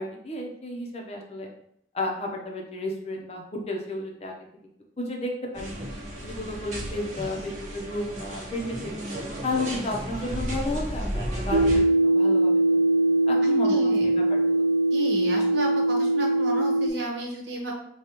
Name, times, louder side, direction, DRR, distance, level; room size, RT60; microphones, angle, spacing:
voice 1, 0.0-1.5 1.9-4.4 5.0-5.7 6.1-9.1 9.4-12.8 13.3-14.6, left 2 dB, 35° left, 1 dB, 0.7 m, -32 dB
sound 1, 5.5-11.8, equal, 45° right, 1.1 m, -34 dB
sound 2, 11.5-16.9, right 1 dB, 65° right, 0.3 m, -21 dB
voice 2, 13.6-14.1 14.9-17.7, right 1 dB, 85° right, 0 dB, 1.0 m, -33 dB
5.0 x 2.3 x 2.9 m, 0.70 s
head